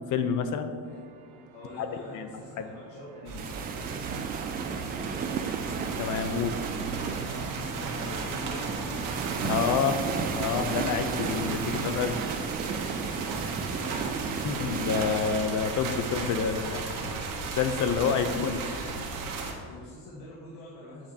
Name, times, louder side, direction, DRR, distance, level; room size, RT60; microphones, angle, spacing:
voice 1, 0.1-0.8 1.8-1.9 2.1-2.3 2.6-2.7 6.0-6.6 9.4-12.2 14.4-17.1 17.6-18.6 19.0-19.2, left 6 dB, 55° left, 8 dB, 0.8 m, -28 dB
sound 1, 0.8-18.0, right 6 dB, 80° right, 1.0 m, -50 dB
voice 2, 1.5-3.5 4.6-5.6 7.2-8.8 12.6-12.8 13.1-14.1 19.7-21.1, left 1 dB, 75° left, -5 dB, 1.6 m, -44 dB
sound 2, 3.2-19.5, right 4 dB, 60° right, 1.4 m, -35 dB
sound 3, 3.4-15.3, right 6 dB, 25° right, 0.3 m, -34 dB
8.6 x 8.4 x 2.9 m, 2.2 s
cardioid pair, 140°, 36 cm